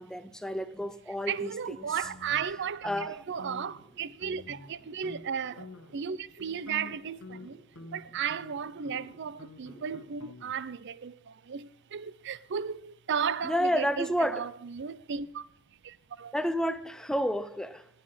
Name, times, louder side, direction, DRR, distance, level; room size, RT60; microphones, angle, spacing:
voice 1, 0.0-1.5 1.8-1.9 2.8-3.2 13.4-14.5 16.3-17.9, equal, 5° left, 0.4 m, -30 dB
sound 1, 1.1-10.3, right 3 dB, 35° right, 5.1 m, -59 dB
voice 2, 1.3-5.7 5.9-7.6 7.9-11.1 11.5-14.1 14.3-15.4 16.2-16.3, right 7 dB, 55° right, 0.5 m, -34 dB
sound 2, 2.0-3.1 3.4-3.8 4.2-4.8 5.0-5.2 5.6-6.0 6.4-10.7, left 2 dB, 75° left, 1.3 m, -48 dB
18.5 x 8.4 x 5.4 m
head